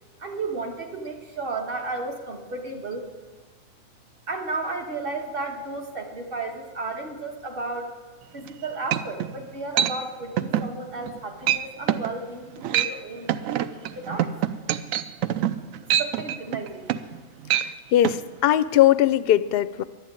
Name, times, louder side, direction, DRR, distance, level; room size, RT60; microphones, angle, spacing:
voice 1, 0.2-3.2 4.3-7.9 8.3-14.4 16.0-17.0, right 3 dB, 40° right, 3 dB, 1.7 m, -33 dB
sound 1, 8.5-8.6 8.9-9.3 9.8-10.0 10.4-10.7 11.0-11.2 11.5-11.6 11.9-12.1 12.6-13.0 13.3-17.2 17.5-17.7 18.0-18.2, right 11 dB, 80° right, 1.0 m, -24 dB
voice 2, 17.6-19.8, left 12 dB, 60° left, 14 dB, 0.6 m, -20 dB
11.5 x 11.0 x 8.8 m, 1.4 s
omnidirectional pair, 1.4 m